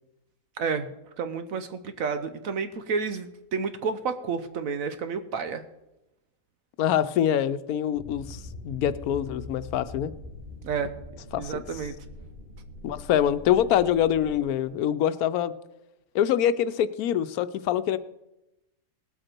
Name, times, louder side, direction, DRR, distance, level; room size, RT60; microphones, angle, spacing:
voice 1, 0.6-5.6 10.6-11.0 11.4-11.9, right 5 dB, 70° right, 10 dB, 1.1 m, -30 dB
voice 2, 6.8-10.1 11.3-11.6 12.8-15.5 16.1-18.0, left 10 dB, 90° left, 14 dB, 1.1 m, -25 dB
sound 1, 7.9-14.4, left 2 dB, 30° right, 3.6 m, -43 dB
19.0 x 7.9 x 4.4 m, 0.93 s
omnidirectional pair, 1.5 m